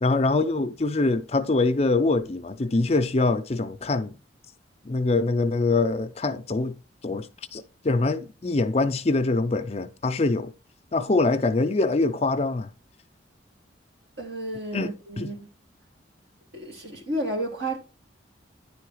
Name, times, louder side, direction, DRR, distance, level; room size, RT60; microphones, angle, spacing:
voice 1, 0.0-4.1 4.8-6.8 7.0-10.5 10.9-12.7 14.7-15.3, left 3 dB, 35° left, 0.5 m, -24 dB
voice 2, 14.2-15.5 16.5-17.8, right 1 dB, 65° right, 2.2 m, -31 dB
10.0 x 3.8 x 4.8 m
head